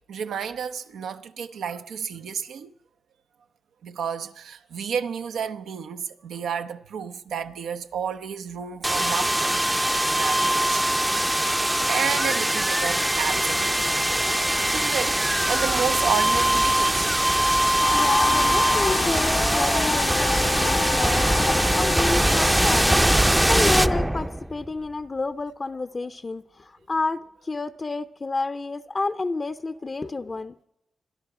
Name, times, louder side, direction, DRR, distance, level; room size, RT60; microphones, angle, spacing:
voice 1, 0.1-2.7 3.8-9.5 10.1-11.0 11.4-13.7 14.6-17.1 21.5-21.6, right 7 dB, 85° right, 0.7 m, -31 dB
sound 1, 8.8-24.7, right 1 dB, 10° right, 0.5 m, -22 dB
sound 2, 17.8-23.3, left 7 dB, 90° left, 0.6 m, -29 dB
voice 2, 17.9-30.5, left 3 dB, 35° left, 0.6 m, -30 dB
26.0 x 10.5 x 4.9 m
cardioid pair, 65°, 0 cm